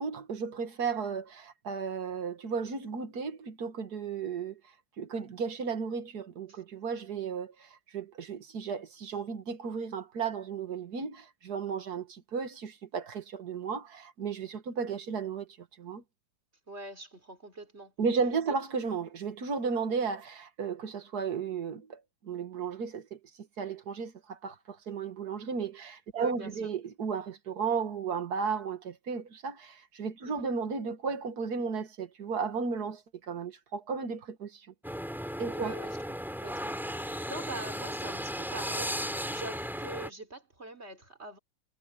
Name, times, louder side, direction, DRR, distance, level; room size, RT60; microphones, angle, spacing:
voice 1, 0.0-4.6 5.0-16.0 18.0-23.2 23.6-34.7 35.4-35.8, right 5 dB, 45° right, 2.1 m, -34 dB
voice 2, 16.7-17.9 26.1-26.5 30.2-30.5 35.5-41.4, right 2 dB, 30° right, 4.0 m, -44 dB
sound 1, 34.8-40.1, equal, ahead, 5.0 m, -35 dB
omnidirectional pair, 2.4 m